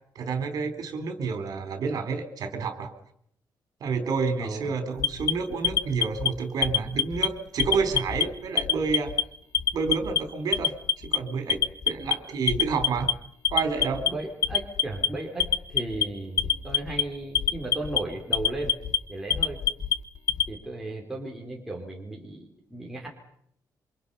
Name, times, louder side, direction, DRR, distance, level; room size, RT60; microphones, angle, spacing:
voice 1, 0.2-2.9 3.8-9.1 9.7-10.7 11.0-13.1 13.5-14.0, right 5 dB, 60° right, 8 dB, 4.2 m, -29 dB
voice 2, 4.4-4.7 14.1-18.7 19.1-19.6 20.5-23.1, right 2 dB, 5° right, -2 dB, 4.1 m, -35 dB
Alarm, 5.0-6.3 6.6-7.3 7.6-8.2 8.6-9.2 9.5-10.2 10.5-11.2 11.5-12.1 12.5-13.1 13.5-14.1 14.4-15.1 15.4-16.0 16.4-17.0 17.4-18.0 18.3-19.0 19.3-20.5, left 9 dB, 55° left, 1.5 m, -24 dB
28.5 x 26.0 x 5.7 m, 0.70 s
wide cardioid pair, 170°, 7 cm